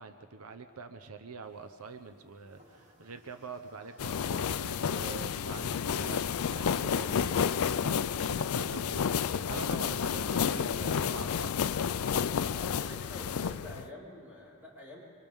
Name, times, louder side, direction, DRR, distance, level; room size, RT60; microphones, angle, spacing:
voice 1, 0.0-11.8, right 5 dB, 90° right, 7 dB, 0.9 m, -45 dB
sound 1, 1.4-6.7, equal, 35° right, 7.8 m, -57 dB
sound 2, 4.0-13.9, left 7 dB, 75° left, 0.4 m, -31 dB
voice 2, 12.5-15.0, left 1 dB, 10° right, -7 dB, 4.8 m, -47 dB
29.0 x 25.0 x 3.7 m, 2.2 s
head